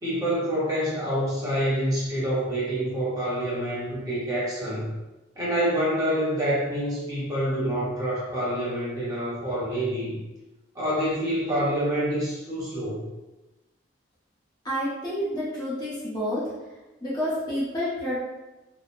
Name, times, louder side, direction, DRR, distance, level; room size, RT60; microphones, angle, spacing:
voice 1, 0.0-5.0 5.4-10.2 10.7-13.1, equal, 20° right, -8 dB, 0.7 m, -27 dB
voice 2, 14.6-16.5 17.0-18.3, equal, 20° left, -9 dB, 0.6 m, -29 dB
2.9 x 2.0 x 2.5 m, 1.1 s
head